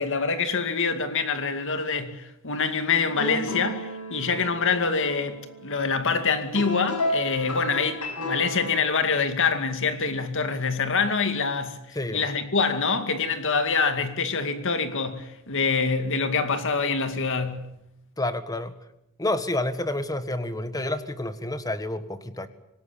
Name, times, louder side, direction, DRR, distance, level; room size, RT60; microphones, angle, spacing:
voice 1, 0.0-11.8 12.1-17.7, left 5 dB, 60° left, 2.3 m, -25 dB
sound 1, 2.9-8.9, left 1 dB, 90° left, 5.9 m, -33 dB
voice 2, 11.9-12.3 18.2-18.7 19.2-22.5, left 1 dB, 15° left, 1.6 m, -29 dB
26.0 x 19.0 x 8.6 m
head